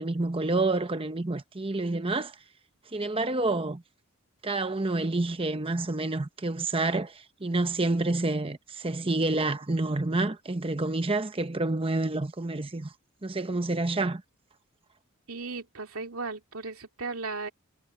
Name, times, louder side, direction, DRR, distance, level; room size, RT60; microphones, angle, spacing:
voice 1, 0.0-2.3 2.9-3.8 4.4-12.9 13.2-14.2, right 2 dB, 25° right, 0.9 m, -28 dB
voice 2, 15.3-17.5, right 4 dB, 80° right, 2.4 m, -36 dB
head